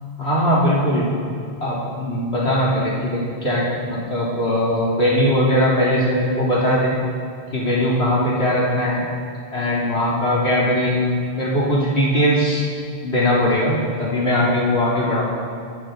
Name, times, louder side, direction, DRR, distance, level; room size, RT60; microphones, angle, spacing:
voice 1, 0.2-1.1 1.6-6.9 7.5-9.0 9.5-12.6 13.0-15.2, equal, 80° left, -7 dB, 4.1 m, -20 dB
29.0 x 12.0 x 4.0 m, 2.5 s
omnidirectional pair, 1.1 m